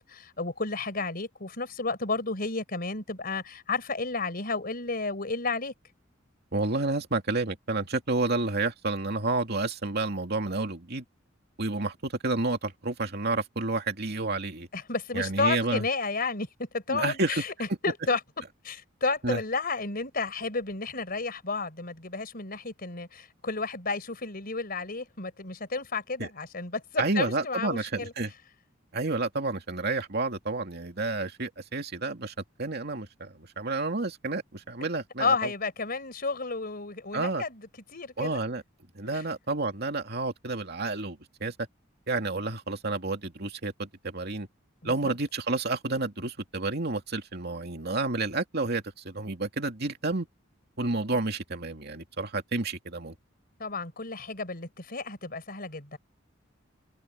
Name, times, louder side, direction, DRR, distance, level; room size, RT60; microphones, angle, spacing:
voice 1, 0.0-5.7 14.7-18.2 18.6-28.1 35.2-37.6 37.9-38.4 39.1-39.2 44.8-45.1 53.6-56.0, left 3 dB, 50° left, 4.6 m, -32 dB
voice 2, 6.5-11.0 11.6-14.7 15.1-15.8 16.9-17.3 19.2-19.4 26.2-26.3 27.0-28.3 28.9-35.5 37.1-37.4 38.2-38.6 38.9-41.5 42.1-44.5 44.8-50.3 50.8-53.1, right 3 dB, 55° right, 2.6 m, -30 dB
head